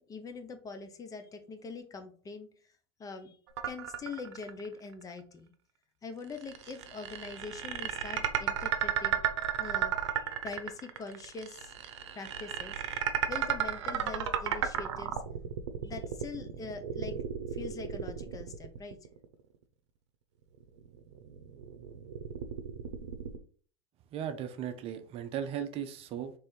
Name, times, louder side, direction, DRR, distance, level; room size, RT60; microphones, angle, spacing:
voice 1, 0.0-2.5 3.0-3.4 3.6-5.5 6.0-9.2 9.6-11.7 12.1-12.8 13.3-15.1 15.8-17.2 17.5-19.0, left 4 dB, 25° left, 7 dB, 0.7 m, -43 dB
sound 1, 3.6-4.7 5.0-5.1 6.3-19.3 20.6-23.4, right 9 dB, 85° right, 0.7 m, -34 dB
voice 2, 24.1-26.3, right 9 dB, 45° right, 8 dB, 0.7 m, -37 dB
3.4 x 3.4 x 4.4 m, 0.44 s
supercardioid pair, 110°, 14 cm